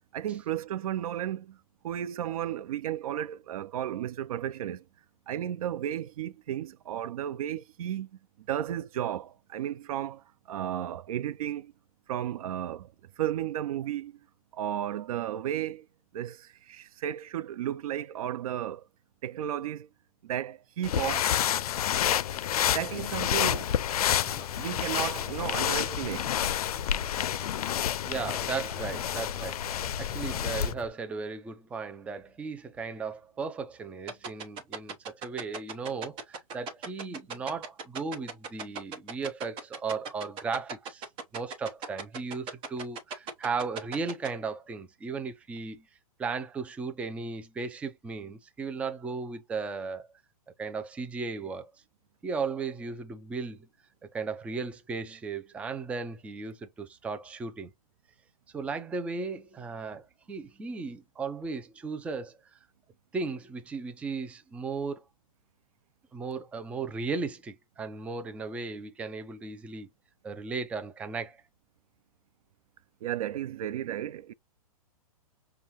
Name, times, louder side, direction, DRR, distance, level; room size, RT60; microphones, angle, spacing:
voice 1, 0.1-1.6 1.8-4.8 5.3-8.1 8.4-11.7 12.1-14.2 14.5-15.9 16.1-18.9 19.2-19.9 20.2-21.3 22.7-24.2 24.5-26.3 73.0-74.3, right 11 dB, 70° right, 0.4 m, -34 dB
sound 1, 20.8-30.7, left 10 dB, 80° left, 0.4 m, -29 dB
Drum kit, 22.9-30.9, left 5 dB, 20° left, 0.8 m, -47 dB
voice 2, 28.0-41.1 41.3-45.9 46.2-50.1 50.6-51.7 52.2-53.7 54.1-57.7 58.5-62.4 63.1-65.0 66.1-69.9 70.2-71.4, right 4 dB, 5° right, 0.4 m, -36 dB
sound 2, 34.1-44.3, right 5 dB, 30° right, 1.0 m, -36 dB
5.4 x 2.3 x 2.9 m
hypercardioid pair, 140°, 19 cm